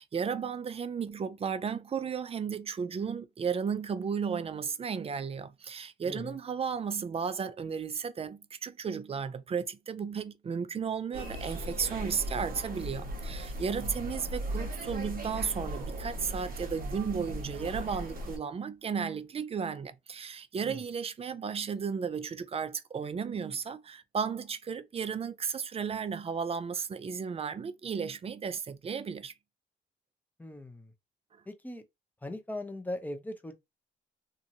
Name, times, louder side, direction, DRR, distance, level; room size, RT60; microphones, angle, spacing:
voice 1, 0.0-29.3 31.3-31.4, right 6 dB, 30° right, 0.4 m, -34 dB
voice 2, 6.0-6.4 13.8-13.9 20.6-20.8 30.4-30.9 31.5-31.8 32.2-33.5, left 1 dB, 10° left, 0.6 m, -39 dB
sound 1, 11.1-18.4, right 1 dB, 45° right, 1.1 m, -38 dB
2.9 x 2.6 x 2.6 m
cardioid pair, 90°, 20 cm